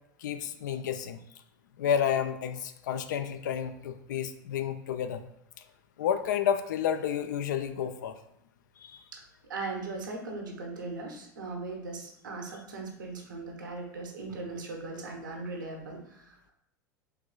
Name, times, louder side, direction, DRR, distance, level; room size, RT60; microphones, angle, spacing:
voice 1, 0.2-1.2 1.8-5.2 6.0-8.1 8.8-9.0, left 8 dB, 65° left, 9 dB, 0.4 m, -30 dB
voice 2, 9.5-16.5, right 3 dB, 75° right, 1 dB, 0.9 m, -39 dB
4.7 x 3.1 x 2.3 m, 0.76 s
figure-of-eight pair, 80°, 10 cm